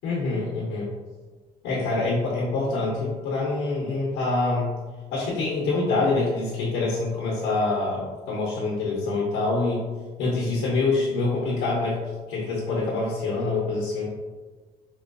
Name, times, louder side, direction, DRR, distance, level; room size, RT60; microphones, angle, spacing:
voice 1, 0.0-0.9 1.6-4.8 5.1-9.8 10.2-12.0 12.3-14.1, left 3 dB, 85° left, -5 dB, 0.8 m, -25 dB
4.2 x 2.2 x 2.5 m, 1.3 s
cardioid pair, 110°, 17 cm